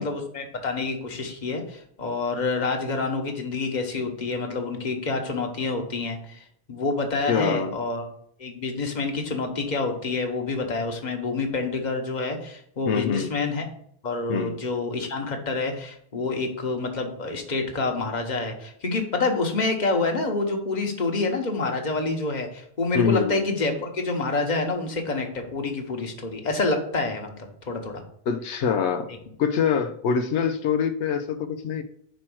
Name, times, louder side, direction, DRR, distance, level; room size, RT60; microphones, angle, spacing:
voice 1, 0.0-6.4 6.7-8.0 8.4-13.6 14.0-27.3 27.7-28.0, left 3 dB, 40° left, 3 dB, 1.2 m, -27 dB
voice 2, 7.3-7.8 12.9-13.4 14.3-14.6 22.9-23.4 28.3-29.1 29.4-31.8, left 6 dB, 85° left, 8 dB, 0.9 m, -25 dB
5.2 x 4.5 x 6.1 m, 0.67 s
omnidirectional pair, 1.1 m